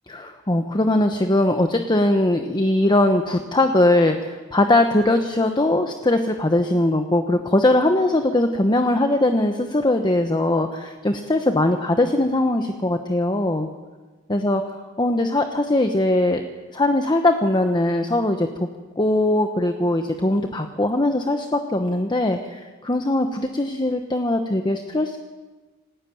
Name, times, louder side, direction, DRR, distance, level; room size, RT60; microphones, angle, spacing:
voice 1, 0.1-13.7 14.3-14.6 15.0-16.4 16.7-18.7 19.0-25.2, left 1 dB, 20° left, 6 dB, 1.1 m, -20 dB
27.0 x 13.0 x 9.4 m, 1.3 s
head